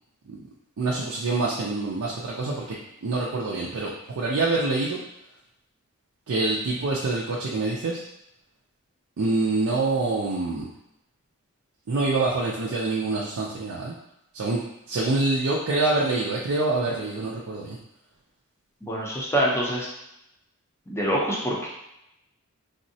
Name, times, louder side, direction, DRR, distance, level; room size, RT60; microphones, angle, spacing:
voice 1, 0.8-5.0 6.3-8.0 9.2-10.7 11.9-13.9 14.3-14.6 14.9-17.8, right 3 dB, 70° right, -4 dB, 0.4 m, -26 dB
voice 2, 18.8-19.9 20.9-21.7, equal, 10° left, -4 dB, 0.5 m, -25 dB
3.5 x 2.0 x 2.6 m, 0.85 s
head